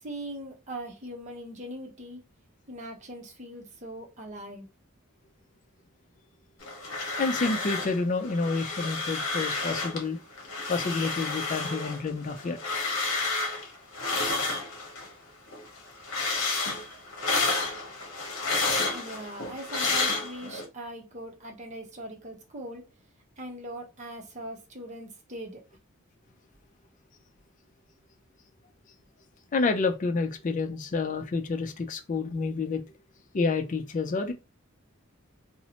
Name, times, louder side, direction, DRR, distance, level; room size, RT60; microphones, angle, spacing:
voice 1, 0.0-2.2 2.7-4.7 18.9-22.9 23.4-25.6, right 1 dB, 35° right, 0.7 m, -40 dB
sound 1, 6.6-8.0 8.2-10.0 10.4-15.1 15.5-20.6, left 3 dB, 65° left, 0.9 m, -30 dB
voice 2, 7.2-10.2 10.7-12.6 14.5-14.6 18.4-18.5 29.5-32.8 33.3-34.3, left 4 dB, 35° left, 0.4 m, -29 dB
2.6 x 2.1 x 2.8 m
head